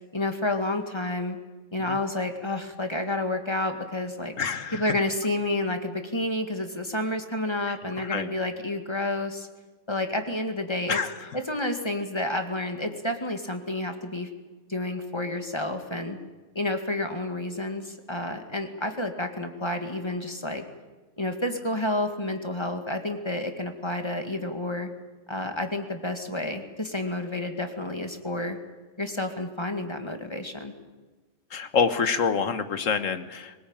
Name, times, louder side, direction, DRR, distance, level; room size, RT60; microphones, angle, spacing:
voice 1, 0.1-1.4 1.7-4.3 4.7-9.5 9.9-11.0 11.3-14.3 14.7-16.2 16.6-20.6 21.2-24.9 25.3-28.6 29.0-30.7, left 1 dB, 20° left, 5 dB, 2.1 m, -30 dB
voice 2, 4.4-4.8 8.0-8.3 10.9-11.1 31.5-33.5, left 6 dB, 85° left, 10 dB, 1.7 m, -26 dB
22.5 x 20.0 x 8.9 m, 1.3 s
omnidirectional pair, 1.3 m